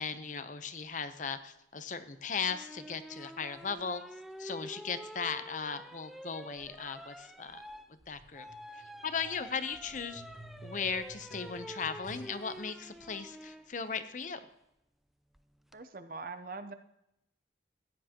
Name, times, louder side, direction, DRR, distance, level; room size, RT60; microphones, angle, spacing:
voice 1, 0.0-4.0 4.4-7.6 8.1-8.5 9.0-10.2 10.6-14.4, left 5 dB, 45° left, 11 dB, 0.7 m, -37 dB
sound 1, 2.5-13.7 15.3-15.8, equal, ahead, 0.3 m, -48 dB
sound 2, 8.2-12.6 13.4-13.5, right 1 dB, 80° left, 2.5 m, -52 dB
voice 2, 15.7-16.7, right 3 dB, 50° right, 10 dB, 0.7 m, -42 dB
15.0 x 10.0 x 2.9 m, 0.83 s
head